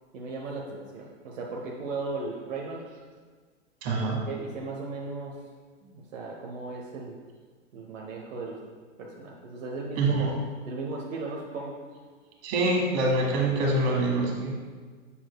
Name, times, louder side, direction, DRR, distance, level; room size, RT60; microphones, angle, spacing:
voice 1, 0.1-2.8 4.3-5.3 5.8-7.2 7.7-8.6 9.0-11.7 13.9-14.0, right 3 dB, 80° right, -2 dB, 1.0 m, -36 dB
voice 2, 3.8-4.2 10.0-10.4 12.4-14.6, right 2 dB, 50° right, -1 dB, 1.8 m, -25 dB
7.1 x 6.8 x 2.3 m, 1.5 s
hypercardioid pair, 120°, 38 cm